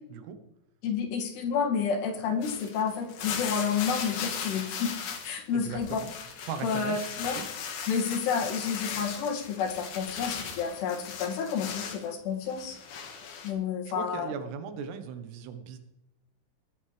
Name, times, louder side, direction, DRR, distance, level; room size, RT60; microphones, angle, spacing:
voice 1, 0.8-6.0 6.6-7.4 7.9-12.8 13.4-14.3, left 6 dB, 80° left, -1 dB, 4.3 m, -30 dB
sound 1, 2.4-5.4 5.7-12.1 12.5-13.5, left 6 dB, 65° left, 3.3 m, -38 dB
voice 2, 5.5-6.1 6.5-7.0 7.4-7.5 13.9-15.8, right 6 dB, 90° right, 8 dB, 3.2 m, -38 dB
20.0 x 10.5 x 3.4 m, 0.94 s
omnidirectional pair, 4.7 m